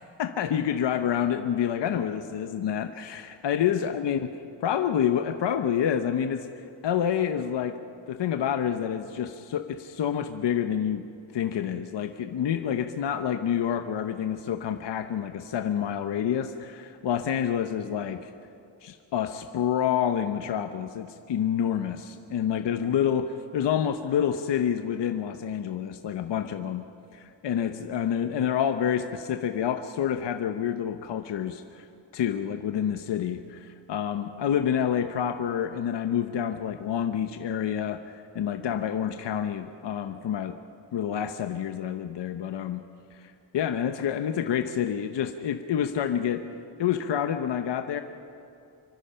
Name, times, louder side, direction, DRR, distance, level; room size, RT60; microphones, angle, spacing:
voice 1, 0.2-4.3 4.6-6.5 6.8-7.8 8.1-11.0 11.3-18.3 18.8-26.8 27.1-31.9 32.1-40.6 40.9-42.8 43.1-46.5 46.8-48.0, left 9 dB, 65° left, 7 dB, 0.9 m, -28 dB
25.5 x 24.0 x 5.6 m, 2.6 s
wide cardioid pair, 150°, 46 cm